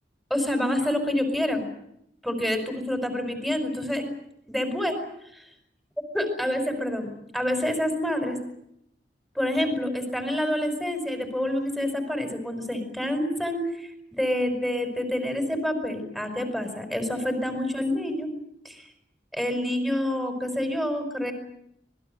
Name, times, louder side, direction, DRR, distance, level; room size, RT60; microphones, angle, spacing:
voice 1, 0.3-1.7 2.2-4.0 4.5-5.0 5.3-5.4 6.1-8.4 9.3-18.3 18.6-18.8 19.3-21.3, left 1 dB, ahead, 6 dB, 5.2 m, -27 dB
26.5 x 21.0 x 8.0 m, 0.76 s
head